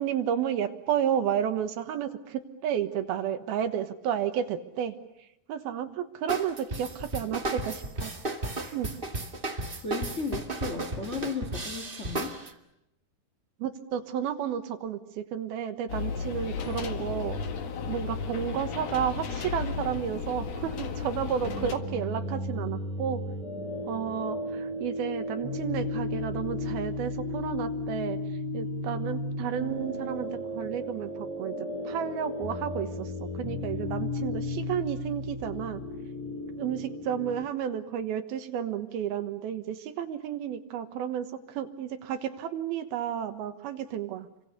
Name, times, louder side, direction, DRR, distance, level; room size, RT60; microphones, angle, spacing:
voice 1, 0.0-4.9 5.5-8.1 8.7-8.9 10.8-10.9 13.6-17.4 17.8-23.2 23.9-28.2 28.5-35.8 36.6-44.3, right 9 dB, 75° right, 9 dB, 3.1 m, -32 dB
sound 1, 6.3-12.5, right 2 dB, 45° right, 0.6 m, -34 dB
voice 2, 9.8-12.6, left 4 dB, 30° left, 4 dB, 1.3 m, -35 dB
sound 2, 15.9-21.8, left 5 dB, 50° left, 2.4 m, -34 dB
sound 3, 21.4-37.4, left 2 dB, 85° left, 6.3 m, -34 dB
29.5 x 25.0 x 6.7 m, 0.83 s
omnidirectional pair, 4.7 m